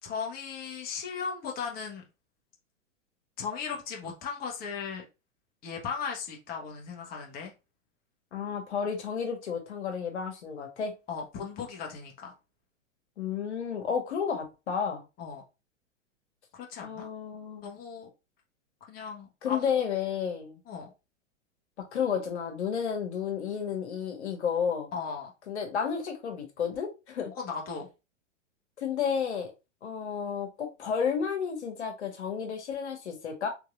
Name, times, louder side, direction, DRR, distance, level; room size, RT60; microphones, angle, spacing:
voice 1, 0.0-2.0 3.4-5.0 5.6-7.5 11.1-12.3 15.2-15.4 16.5-17.1 17.6-18.1 18.9-19.7 20.7-20.9 24.9-25.3 27.3-27.9, left 6 dB, 25° left, 1.1 m, -37 dB
voice 2, 8.3-11.0 13.2-15.0 16.8-17.6 19.4-20.6 21.8-24.9 25.5-27.3 28.8-29.5 29.8-33.5, left 7 dB, 60° left, 1.4 m, -31 dB
4.6 x 3.4 x 2.5 m
figure-of-eight pair, 105°, 38 cm